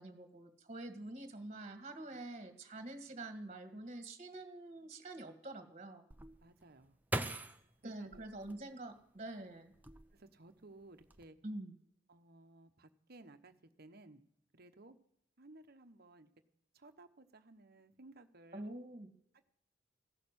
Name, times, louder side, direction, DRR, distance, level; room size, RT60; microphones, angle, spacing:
voice 1, 0.0-6.0 7.8-9.7 11.4-11.7 18.5-19.1, right 2 dB, 35° right, 8 dB, 1.8 m, -46 dB
sound 1, 6.1-9.2 9.7-10.5 10.8-11.2, right 1 dB, 10° right, 0.8 m, -42 dB
voice 2, 6.4-7.0 7.8-8.2 10.1-11.4 12.1-14.2 14.5-15.0 15.4-16.3 16.7-18.6, right 2 dB, 50° right, 9 dB, 1.1 m, -58 dB
15.5 x 6.7 x 9.8 m, 0.74 s
head